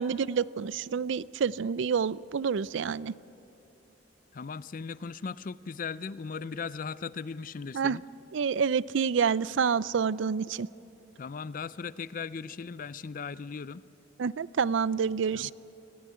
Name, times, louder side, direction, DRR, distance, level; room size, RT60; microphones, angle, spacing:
voice 1, 0.0-3.1 7.7-8.0 8.3-10.7 14.2-15.5, right 6 dB, 70° right, 20 dB, 0.4 m, -28 dB
voice 2, 4.3-8.0 11.2-13.8 15.3-15.5, left 5 dB, 45° left, 18 dB, 0.4 m, -38 dB
25.5 x 15.0 x 9.5 m, 3.0 s
head